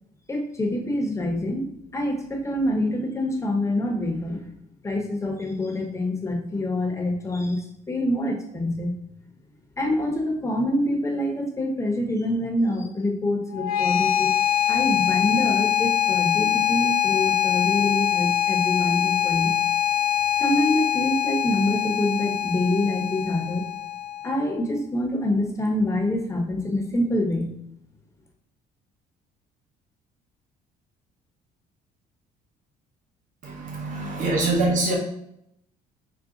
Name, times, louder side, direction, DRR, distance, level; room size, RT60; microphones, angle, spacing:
voice 1, 0.3-1.7 1.9-4.4 4.8-8.9 9.8-14.3 14.7-19.5 20.4-23.6 24.2-27.5, left 1 dB, 15° left, 1 dB, 0.9 m, -26 dB
sound 1, 13.5-24.5, left 11 dB, 60° left, 0.7 m, -23 dB
voice 2, 33.4-35.0, right 2 dB, 50° right, 0 dB, 0.9 m, -24 dB
5.0 x 2.1 x 3.7 m, 0.76 s
cardioid pair, 110°, 17 cm